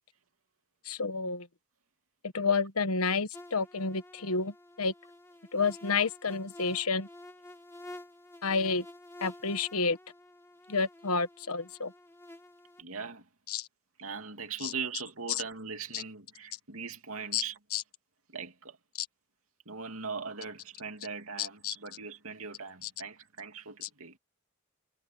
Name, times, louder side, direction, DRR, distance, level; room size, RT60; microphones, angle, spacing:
voice 1, 0.8-1.5 2.2-4.9 5.5-7.1 8.4-8.8 9.2-10.0 10.7-11.9 13.5-13.7 14.6-14.7 15.3-15.4 15.9-16.0 17.3-17.4 17.7-17.8 21.4-21.7 22.8-22.9 23.8-23.9, left 4 dB, 90° left, 1.3 m, -30 dB
sound 1, 3.3-12.8, left 1 dB, 10° left, 2.2 m, -50 dB
voice 2, 12.8-13.3 14.0-17.6 18.3-18.8 19.6-24.2, right 5 dB, 70° right, 2.9 m, -40 dB
head